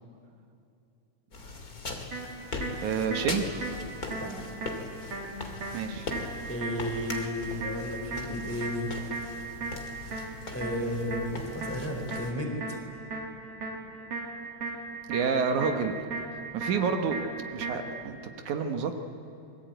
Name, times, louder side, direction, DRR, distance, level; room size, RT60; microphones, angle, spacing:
sound 1, 1.3-12.3, left 3 dB, 30° left, 2.6 m, -40 dB
sound 2, 2.1-18.1, right 3 dB, 50° right, 3.8 m, -38 dB
voice 1, 2.8-3.5 5.7-6.1 15.1-16.0 16.5-17.2 17.5-19.0, right 6 dB, 75° right, 6 dB, 2.7 m, -29 dB
voice 2, 6.5-8.9 10.5-12.8, left 1 dB, 5° left, 2 dB, 3.6 m, -33 dB
27.5 x 22.0 x 9.2 m, 2.7 s
omnidirectional pair, 3.5 m